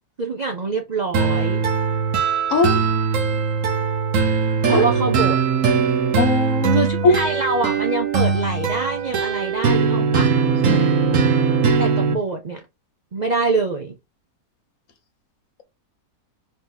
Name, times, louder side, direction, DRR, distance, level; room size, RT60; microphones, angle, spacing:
voice 1, 0.2-1.6 4.7-5.4 6.7-10.3 11.8-12.6 13.1-13.9, right 3 dB, 75° right, 0.4 m, -25 dB
sound 1, 1.1-12.1, right 5 dB, 60° right, 1.2 m, -20 dB
voice 2, 2.5-2.8 4.6-4.8 6.2-7.2 10.7-10.9, left 3 dB, 60° left, 1.2 m, -20 dB
4.9 x 2.9 x 3.8 m
omnidirectional pair, 1.7 m